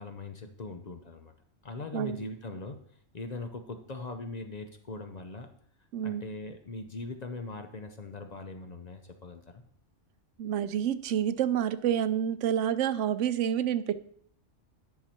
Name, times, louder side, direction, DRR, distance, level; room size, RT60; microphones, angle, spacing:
voice 1, 0.0-1.3 1.6-2.8 3.1-5.5 6.0-9.6, left 3 dB, 40° left, 6 dB, 0.7 m, -40 dB
voice 2, 10.4-14.0, right 9 dB, 85° right, 13 dB, 0.9 m, -28 dB
10.5 x 5.8 x 4.3 m, 0.63 s
omnidirectional pair, 1.2 m